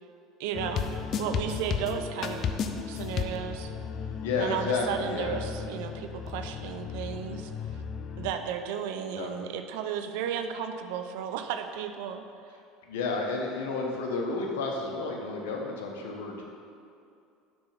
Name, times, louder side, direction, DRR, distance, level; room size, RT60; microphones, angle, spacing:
voice 1, 0.4-0.9 1.2-2.5 2.8-3.7 4.3-7.8 8.2-12.2, right 8 dB, 75° right, 7 dB, 0.5 m, -34 dB
sound 1, 0.5-8.3, left 6 dB, 45° left, 0.5 m, -34 dB
voice 2, 4.2-5.4 9.1-9.3 12.9-16.4, left 3 dB, 80° left, 0 dB, 1.0 m, -31 dB
6.9 x 3.5 x 5.7 m, 2.5 s
hypercardioid pair, 80°, 0 cm